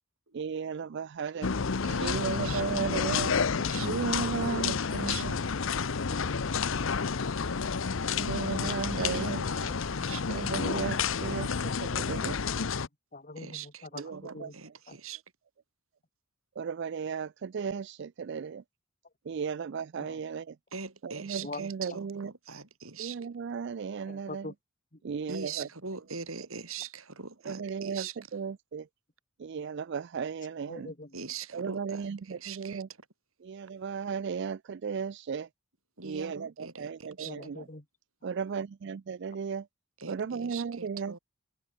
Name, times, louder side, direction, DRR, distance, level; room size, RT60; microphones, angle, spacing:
voice 1, 0.3-1.5 2.0-3.3 3.8-5.4 8.0-9.4 10.3-12.4 14.0-14.5 16.6-18.6 19.3-20.6 21.0-22.3 23.0-24.5 25.0-25.7 27.5-28.9 29.4-30.9 31.5-32.9 33.4-35.5 36.0-37.6 38.2-39.7 40.1-41.2, right 6 dB, 55° right, 0.4 m, -35 dB
sound 1, 1.4-12.9, left 5 dB, 65° left, 0.7 m, -30 dB
voice 2, 1.8-3.9 4.9-5.3 9.0-9.7 10.1-10.5 13.4-15.2 20.7-23.2 25.3-28.2 31.1-32.8 36.0-37.3 40.0-41.2, right 5 dB, 80° right, 3.2 m, -42 dB
voice 3, 3.4-4.2 7.9-8.3 9.7-9.8 10.1-10.3 12.8-14.6 14.9-15.0 19.0-19.1 20.0-20.2 21.4-22.0 24.0-24.5 24.9-25.3 30.7-31.2 32.3-32.4 37.2-37.9, left 2 dB, 40° left, 2.7 m, -45 dB
head